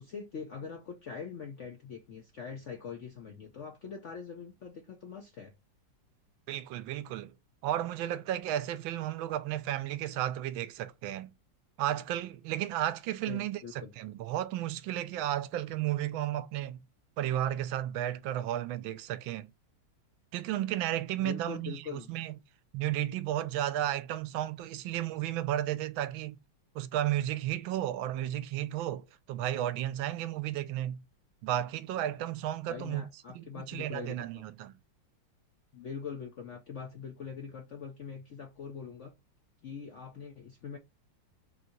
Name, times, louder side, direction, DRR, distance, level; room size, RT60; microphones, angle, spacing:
voice 1, 0.0-5.5 13.3-13.9 21.2-22.1 32.6-34.4 35.7-39.1 39.6-40.8, left 6 dB, 70° left, 0.7 m, -43 dB
voice 2, 6.5-7.3 7.6-11.3 11.8-16.8 17.2-19.5 20.3-22.4 22.7-26.4 26.7-31.0 31.4-33.0 33.3-34.7, right 12 dB, 80° right, 1.4 m, -33 dB
3.9 x 2.7 x 4.3 m
omnidirectional pair, 2.2 m